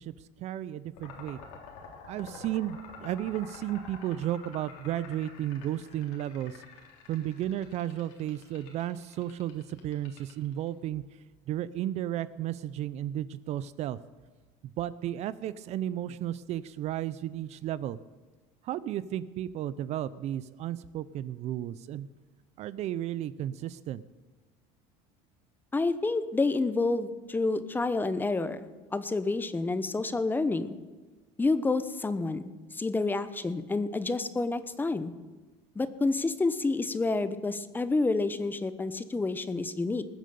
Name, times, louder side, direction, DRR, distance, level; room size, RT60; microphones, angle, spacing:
voice 1, 0.0-1.4 2.1-6.6 7.1-11.0 11.5-14.0 14.6-18.0 18.6-22.1 22.6-24.0, right 12 dB, 50° right, 17 dB, 0.5 m, -33 dB
sound 1, 0.9-10.7, left 5 dB, 85° left, 3.7 m, -48 dB
voice 2, 25.7-30.8 31.4-32.4 32.7-35.1 35.8-40.0, left 3 dB, 15° left, 13 dB, 0.8 m, -29 dB
20.0 x 7.5 x 6.9 m, 1.3 s
supercardioid pair, 120°, 15 cm